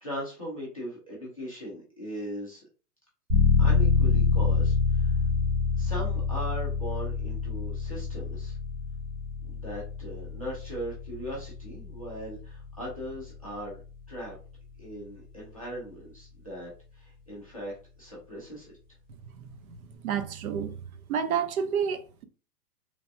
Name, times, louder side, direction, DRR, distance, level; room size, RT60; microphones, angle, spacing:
voice 1, 0.0-2.6 3.6-5.2 5.8-8.6 9.4-13.8 14.1-14.4 14.8-18.7, equal, 25° left, 0.3 m, -39 dB
sound 1, 3.3-13.8, left 4 dB, 15° right, 1.0 m, -27 dB
voice 2, 19.4-20.7 21.1-22.2, right 7 dB, 60° right, 0.6 m, -30 dB
3.2 x 2.1 x 2.5 m
hypercardioid pair, 150°, 49 cm